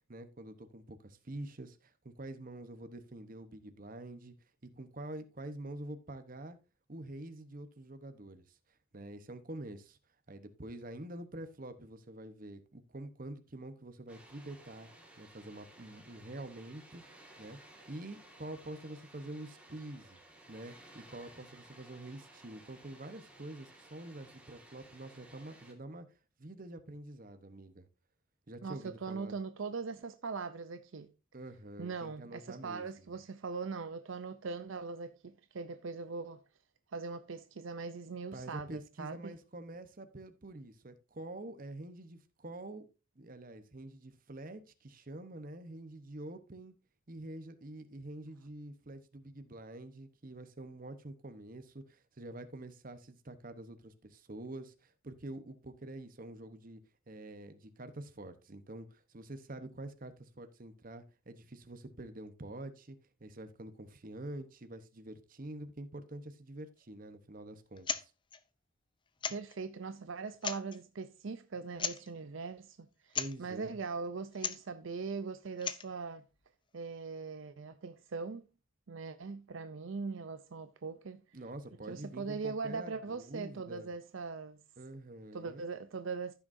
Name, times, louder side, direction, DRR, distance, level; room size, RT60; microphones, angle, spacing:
voice 1, 0.0-4.3 4.6-6.6 6.9-8.6 8.9-10.0 10.3-14.9 15.2-17.0 17.4-17.6 17.9-20.2 20.5-26.1 26.4-27.9 28.5-29.3 31.3-33.1 38.3-42.9 43.2-46.7 47.1-56.8 57.1-68.1 73.1-73.7 81.3-83.9 84.8-85.7, right 1 dB, 40° right, 1.0 m, -46 dB
Water, 14.1-25.7, right 1 dB, 5° right, 1.8 m, -57 dB
voice 2, 28.6-31.1 31.8-36.4 36.9-39.4 69.3-76.2 76.7-78.5 78.9-81.4 81.9-84.6 85.3-86.3, right 4 dB, 65° right, 0.5 m, -41 dB
sound 1, 67.8-68.1 68.3-68.4 69.2-69.6 70.3-70.8 71.8-72.1 73.1-73.4 74.3-74.7 75.5-75.9, left 7 dB, 20° left, 0.5 m, -36 dB
15.0 x 6.2 x 2.6 m
head